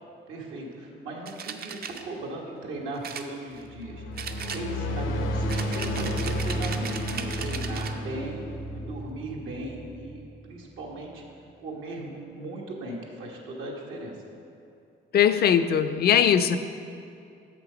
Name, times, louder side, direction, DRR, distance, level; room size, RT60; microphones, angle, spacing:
voice 1, 0.3-4.2 4.5-8.4 8.7-11.2 11.6-14.1, right 2 dB, 85° right, -2 dB, 1.3 m, -38 dB
sound 1, 1.3-2.0 3.0-3.8 4.2-5.0 5.5-8.0, right 6 dB, 50° right, 0.5 m, -37 dB
sound 2, 3.6-10.2, equal, 80° left, 0.7 m, -32 dB
voice 2, 15.1-16.6, left 8 dB, 55° left, 11 dB, 0.4 m, -20 dB
6.6 x 6.0 x 5.0 m, 2.6 s
cardioid pair, 90°, 20 cm